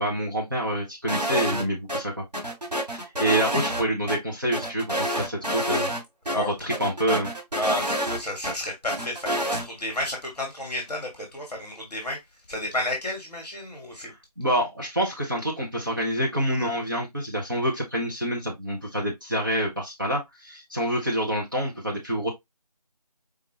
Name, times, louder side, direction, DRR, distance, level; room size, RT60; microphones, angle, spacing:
voice 1, 0.0-2.1 2.9-5.9 6.3-7.3 14.4-22.3, right 1 dB, 30° right, 0.9 m, -27 dB
sound 1, 1.1-1.6 1.9-2.0 2.3-4.2 4.5-6.0 6.3-6.4 6.7-8.5 8.9-9.6, equal, 80° right, 2.6 m, -28 dB
voice 2, 7.5-12.2 12.5-14.1, left 1 dB, ahead, 1.1 m, -31 dB
5.0 x 2.7 x 3.0 m
figure-of-eight pair, 175°, 20 cm